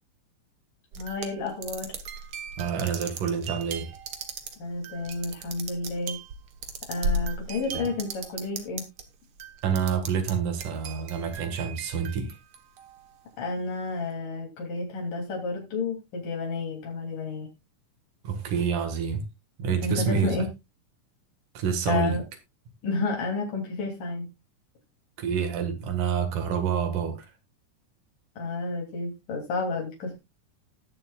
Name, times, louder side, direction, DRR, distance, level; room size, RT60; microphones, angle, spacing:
sound 1, 0.9-9.0 9.4-10.3 10.6-13.0, right 2 dB, 55° right, 1.7 m, -36 dB
voice 1, 1.0-2.0 4.6-6.2 6.9-8.8 13.4-17.5 19.8-20.5 21.9-22.2 22.8-24.3 28.4-30.2, left 3 dB, 80° left, 4.6 m, -31 dB
voice 2, 2.6-3.9 7.7-7.9 9.6-12.3 18.2-19.2 19.6-20.5 21.5-22.2 25.2-27.3, right 7 dB, 80° right, 3.2 m, -28 dB
19.0 x 7.0 x 2.4 m
omnidirectional pair, 3.7 m